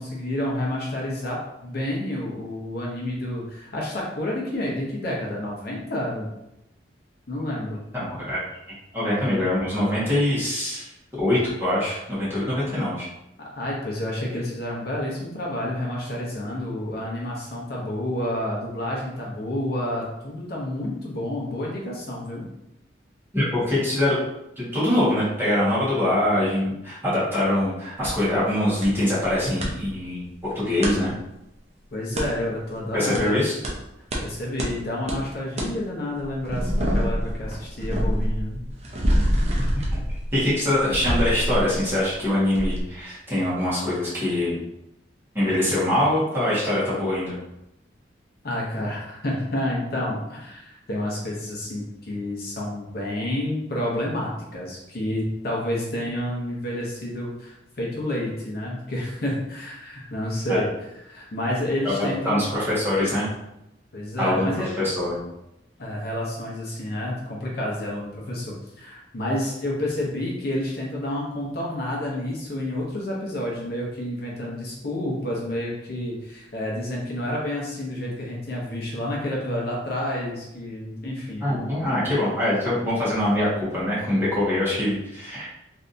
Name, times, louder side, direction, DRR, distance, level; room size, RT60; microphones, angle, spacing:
voice 1, 0.0-6.3 7.3-7.8 13.4-22.4 31.9-33.4 34.2-38.6 48.4-60.7 61.1-62.4 63.9-64.7 65.8-81.7, left 1 dB, 60° left, -3 dB, 0.7 m, -29 dB
voice 2, 7.9-8.4 8.9-10.9 11.2-13.1 23.3-24.2 24.6-31.1 32.9-33.6 40.3-44.6 45.3-47.4 60.5-60.6 61.8-63.3 64.2-64.5 64.8-65.2 81.4-85.5, left 1 dB, 15° right, -10 dB, 1.4 m, -23 dB
sound 1, 28.0-28.1 28.8-28.9 29.2-29.7 30.8-30.9 32.2-32.3 33.1-33.2 33.6-33.7 34.1-34.2 34.6-34.7 35.1-35.2 35.6-35.7 36.2-42.2 42.5-42.8, equal, 35° right, 0.6 m, -25 dB
3.3 x 2.7 x 2.6 m, 0.87 s
head